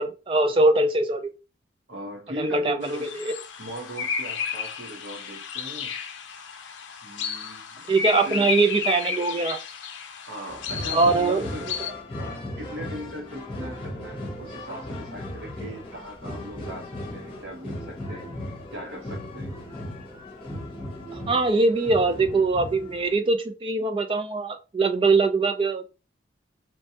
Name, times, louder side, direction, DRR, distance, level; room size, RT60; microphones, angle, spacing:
voice 1, 0.0-1.3 2.4-3.3 7.9-9.6 10.9-11.5 21.1-25.8, right 3 dB, 30° right, 0.3 m, -22 dB
voice 2, 1.9-3.1 3.6-5.9 7.0-7.9 8.2-8.5 10.3-11.7 12.2-19.7, equal, 80° right, 1.1 m, -39 dB
sound 1, 2.8-11.9, left 7 dB, 80° left, 0.5 m, -32 dB
sound 2, 10.5-23.1, left 1 dB, 30° left, 0.8 m, -37 dB
3.1 x 2.2 x 2.8 m
head